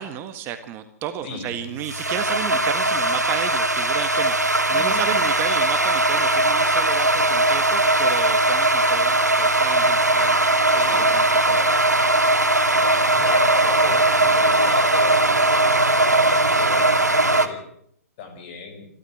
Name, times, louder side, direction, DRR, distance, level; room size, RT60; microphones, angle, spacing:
voice 1, 0.0-10.4 10.7-11.2, right 10 dB, 25° right, 9 dB, 1.6 m, -32 dB
voice 2, 1.2-1.6 4.7-5.1 10.8-11.1 11.5-11.8 12.7-17.6 18.2-18.9, left 5 dB, 35° left, 7 dB, 6.0 m, -35 dB
sound 1, 1.3-17.5, right 2 dB, 90° right, 2.5 m, -19 dB
27.5 x 12.5 x 7.9 m, 0.67 s
figure-of-eight pair, 120°, 9 cm